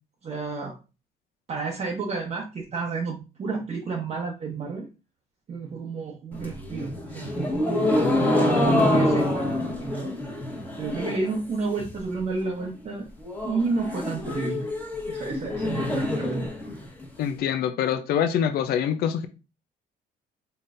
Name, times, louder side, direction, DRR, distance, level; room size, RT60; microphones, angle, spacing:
voice 1, 0.2-0.8 1.5-4.9 5.5-7.5 8.0-10.2 10.8-13.1 13.4-14.6 15.1-16.5, right 4 dB, 40° right, 0.9 m, -31 dB
sound 1, 6.3-11.4 11.6-12.2 12.5-12.6 12.8-12.9 13.2-17.2, left 1 dB, 10° left, 1.2 m, -26 dB
voice 2, 17.2-19.3, left 9 dB, 65° left, 0.5 m, -25 dB
3.9 x 3.9 x 2.5 m
cardioid pair, 110°, 17 cm